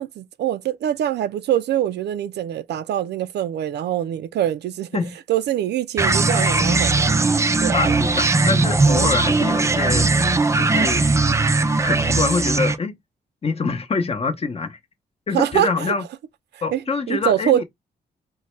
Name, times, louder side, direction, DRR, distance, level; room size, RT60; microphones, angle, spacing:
voice 1, 0.0-4.9 5.3-7.3 7.6-8.0 8.8-9.1 15.3-15.9 16.7-17.6, right 11 dB, 85° right, 0.4 m, -24 dB
sound 1, 6.0-12.8, right 3 dB, 15° right, 0.4 m, -19 dB
voice 2, 7.7-10.1 10.6-11.1 11.8-13.0 13.4-14.8 15.3-16.0 16.6-17.6, left 4 dB, 35° left, 0.7 m, -25 dB
3.9 x 2.2 x 3.1 m
cardioid pair, 100°, 17 cm